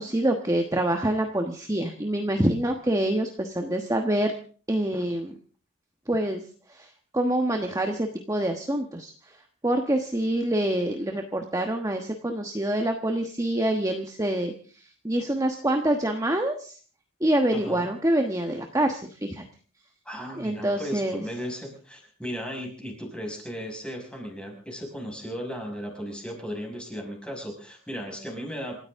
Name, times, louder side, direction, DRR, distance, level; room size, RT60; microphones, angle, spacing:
voice 1, 0.0-4.3 4.7-5.3 6.1-6.4 6.7-9.4 9.6-16.8 17.2-19.4 20.4-21.2, right 1 dB, 15° right, 4 dB, 1.2 m, -26 dB
voice 2, 17.5-17.9 20.0-28.7, equal, 5° left, 1 dB, 5.7 m, -36 dB
28.0 x 14.0 x 3.7 m, 0.42 s
head